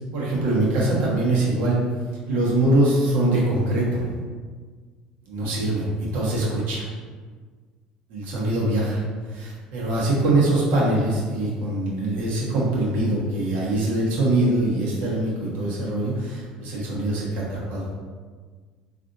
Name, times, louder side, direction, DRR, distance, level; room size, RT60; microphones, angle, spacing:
voice 1, 0.1-1.8 2.3-4.0 5.3-6.9 8.1-9.0 9.3-17.9, right 2 dB, 65° right, -5 dB, 1.1 m, -23 dB
3.3 x 2.5 x 2.6 m, 1.5 s
hypercardioid pair, 75°, 3 cm